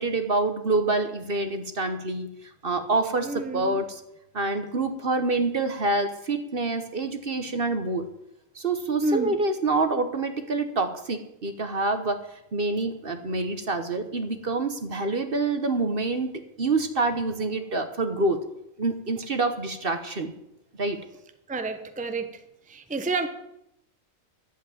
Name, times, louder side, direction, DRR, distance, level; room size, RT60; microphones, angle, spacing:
voice 1, 0.0-2.3 2.6-3.8 4.3-8.1 8.5-12.2 12.5-16.3 16.6-18.4 18.8-20.3 20.8-21.0, right 3 dB, 45° right, 8 dB, 1.2 m, -26 dB
voice 2, 3.2-3.8 9.0-9.3 21.5-22.4 22.7-23.3, right 2 dB, 5° right, 7 dB, 0.8 m, -29 dB
11.5 x 8.3 x 9.1 m, 0.83 s
omnidirectional pair, 1.4 m